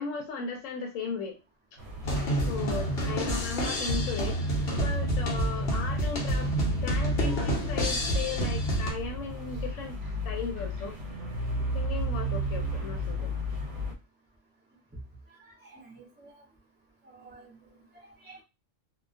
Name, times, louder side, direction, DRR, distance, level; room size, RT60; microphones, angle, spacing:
voice 1, 0.0-1.4 2.5-4.4 4.7-10.0 10.2-10.9 11.7-13.3, left 5 dB, 85° left, 3 dB, 0.9 m, -36 dB
sound 1, 1.8-13.9, equal, 65° right, 0.8 m, -35 dB
sound 2, 2.0-8.9, right 1 dB, 60° left, 0.9 m, -28 dB
voice 2, 15.4-16.4 17.1-17.8 18.0-18.4, right 3 dB, 10° right, -2 dB, 0.6 m, -52 dB
2.3 x 2.2 x 2.4 m, 0.27 s
omnidirectional pair, 1.3 m